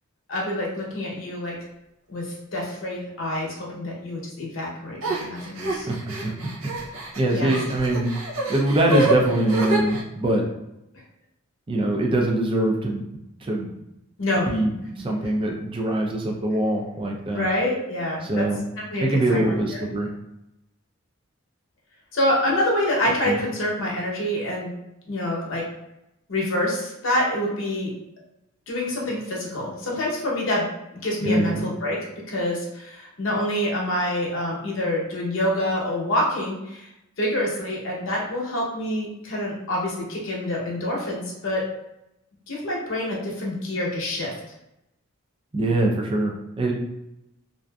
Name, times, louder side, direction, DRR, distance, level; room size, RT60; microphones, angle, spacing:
voice 1, 0.3-1.5 2.1-5.9 7.3-7.5 14.2-14.5 17.3-18.4 18.9-19.4 19.7-19.8 22.1-24.7 25.1-25.6 26.3-27.9 28.7-30.7 30.9-32.0 32.3-36.9 37.2-41.6 42.5-44.3, left 1 dB, 65° left, -3 dB, 0.8 m, -26 dB
sound 1, 5.0-10.0, right 1 dB, 80° right, 0.5 m, -27 dB
voice 2, 5.8-6.3 7.2-8.1 8.5-10.5 11.7-13.7 14.5-17.5 18.2-18.6 19.0-20.1 23.3-23.4 31.2-31.6 45.5-46.7, right 1 dB, 25° right, 0 dB, 0.4 m, -23 dB
2.6 x 2.4 x 2.2 m, 0.87 s
head